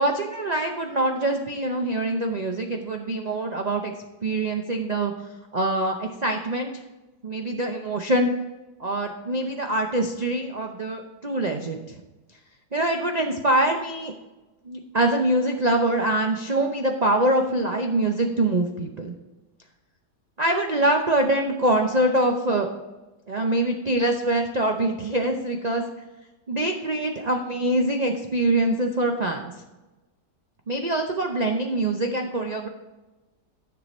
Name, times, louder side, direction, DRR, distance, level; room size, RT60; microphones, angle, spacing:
voice 1, 0.0-3.9 4.2-5.1 5.5-6.7 7.2-8.3 8.8-11.8 12.7-14.1 14.7-19.1 20.4-22.7 23.3-25.8 26.5-29.5 30.7-32.7, right 1 dB, 70° right, 3 dB, 0.4 m, -24 dB
10.5 x 6.7 x 4.3 m, 1.1 s
omnidirectional pair, 1.9 m